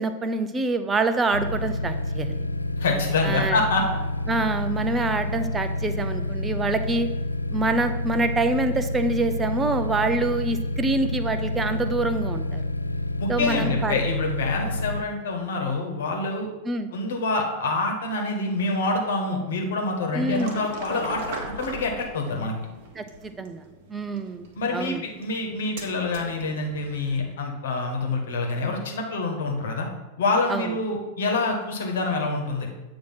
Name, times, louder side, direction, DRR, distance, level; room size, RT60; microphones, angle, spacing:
voice 1, 0.0-2.5 3.2-3.6 4.3-7.1 7.5-12.6 13.3-13.9 16.6-16.9 20.1-20.6 23.0-23.6 23.9-24.5 24.7-25.0 30.5-30.7, right 3 dB, 15° right, 9 dB, 0.5 m, -26 dB
sound 1, 1.3-15.0, left 2 dB, 85° left, 0.3 m, -29 dB
voice 2, 2.8-3.8 13.2-16.5 16.9-22.5 24.5-29.9 30.2-32.7, left 3 dB, 60° left, 1 dB, 1.3 m, -26 dB
sound 2, 20.3-27.3, right 2 dB, 50° right, 1.3 m, -40 dB
8.5 x 2.9 x 5.7 m, 1.1 s
figure-of-eight pair, 90°, 0 cm